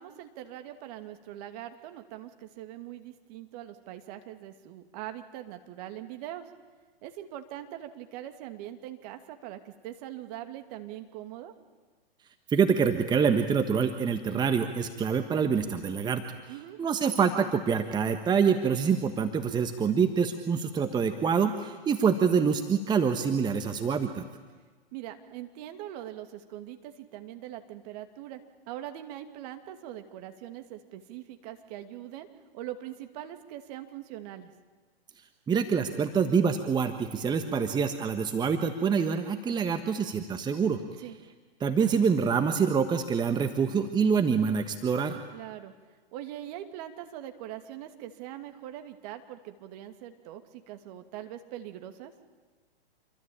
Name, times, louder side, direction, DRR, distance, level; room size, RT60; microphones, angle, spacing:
voice 1, 0.0-6.4 7.0-11.5 16.5-16.8 24.9-28.4 28.7-32.3 32.5-34.5 41.0-41.2 45.3-45.7 46.1-52.1, right 12 dB, 40° right, 7 dB, 2.6 m, -42 dB
voice 2, 12.5-24.2 35.5-40.8 41.6-45.2, right 6 dB, 15° right, 7 dB, 1.4 m, -26 dB
27.0 x 24.0 x 8.9 m, 1.4 s
hypercardioid pair, 120°, 30 cm